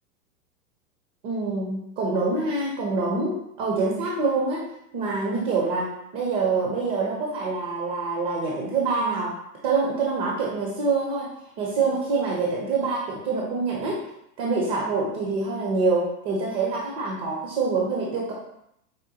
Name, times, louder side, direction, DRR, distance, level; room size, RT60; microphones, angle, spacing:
voice 1, 1.2-4.7 4.9-9.4 9.6-11.3 11.6-14.0 14.4-18.3, right 4 dB, 30° right, -3 dB, 0.6 m, -25 dB
4.9 x 2.1 x 2.7 m, 0.78 s
hypercardioid pair, 125°, 46 cm